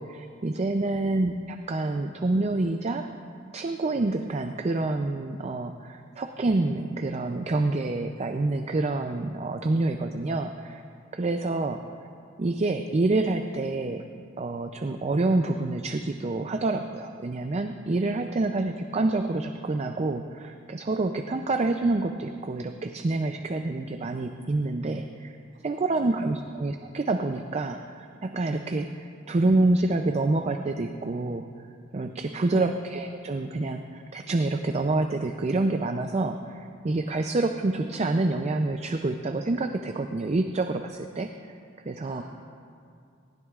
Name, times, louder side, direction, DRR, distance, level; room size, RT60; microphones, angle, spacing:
voice 1, 0.0-3.1 3.5-10.8 11.1-11.8 12.4-14.0 14.4-25.3 25.6-31.5 31.9-41.3 41.9-42.2, right 2 dB, 35° right, 6 dB, 0.4 m, -27 dB
voice 2, 25.5-26.2 32.1-32.5 41.8-42.2, right 1 dB, 60° right, -5 dB, 3.1 m, -52 dB
19.5 x 15.5 x 2.4 m, 2.4 s
head